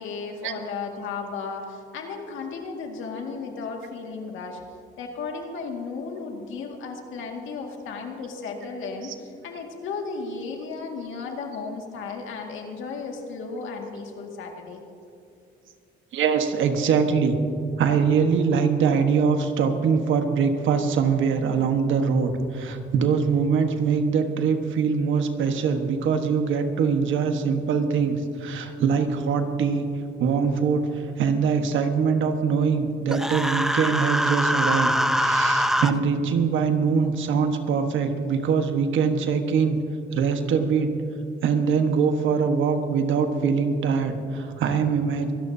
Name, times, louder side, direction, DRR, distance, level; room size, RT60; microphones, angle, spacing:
voice 1, 0.0-4.6 5.0-14.8, left 4 dB, 85° left, 2 dB, 2.0 m, -34 dB
voice 2, 16.1-17.4 17.8-29.9 30.2-39.8 40.1-40.9 41.4-45.3, right 6 dB, 75° right, 6 dB, 1.3 m, -23 dB
Human voice, 33.1-35.9, equal, ahead, 0.6 m, -23 dB
24.5 x 12.5 x 2.8 m, 2.5 s
cardioid pair, 90°, 20 cm